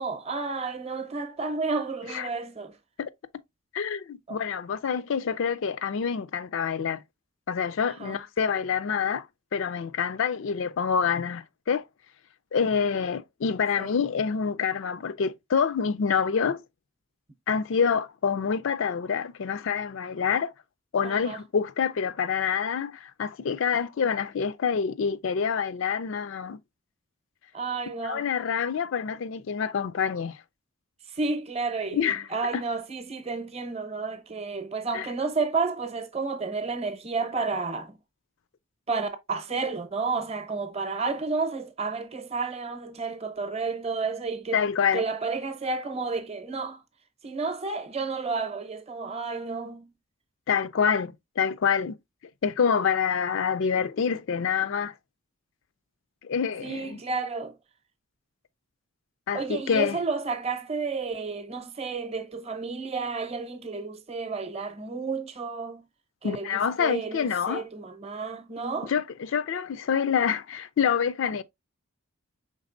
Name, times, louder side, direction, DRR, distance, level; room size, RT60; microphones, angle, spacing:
voice 1, 0.0-2.8 4.3-4.4 8.0-8.2 13.8-14.0 21.0-21.4 27.5-28.3 31.1-38.0 38.9-44.6 44.9-46.8 47.2-49.9 56.6-57.5 59.3-65.8 66.2-68.9, right 4 dB, 30° right, 0.7 m, -31 dB
voice 2, 3.7-7.0 7.5-9.3 9.5-11.8 12.5-16.6 17.5-20.5 20.9-26.6 28.0-30.4 31.9-32.2 34.9-35.1 44.5-45.0 50.5-51.9 52.4-54.9 56.2-57.0 59.3-60.0 66.2-67.6 68.9-71.4, left 6 dB, 60° left, 0.4 m, -27 dB
5.2 x 3.5 x 2.5 m
head